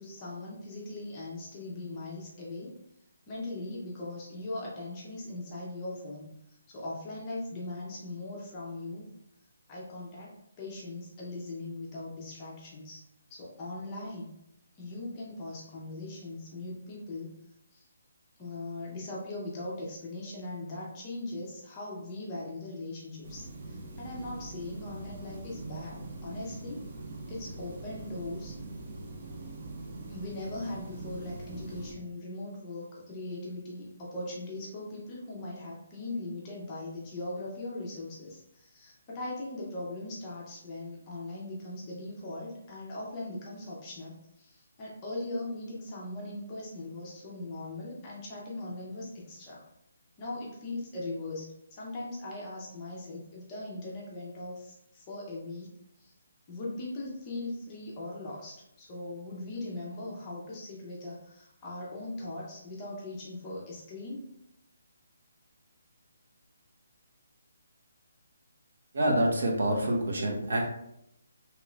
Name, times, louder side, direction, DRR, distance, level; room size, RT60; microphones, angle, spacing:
voice 1, 0.0-2.7 3.3-6.3 6.7-9.1 9.7-13.0 13.3-14.3 14.8-17.3 17.7-17.9 18.4-26.9 27.3-28.6 30.1-49.6 50.2-55.7 56.0-56.1 56.5-64.2, left 2 dB, 15° left, -5 dB, 0.6 m, -40 dB
sound 1, 23.2-31.9, right 2 dB, 30° right, 0.4 m, -43 dB
voice 2, 68.9-70.7, right 1 dB, 55° right, 0 dB, 0.7 m, -27 dB
2.9 x 2.5 x 3.1 m, 0.78 s
hypercardioid pair, 175°, 0 cm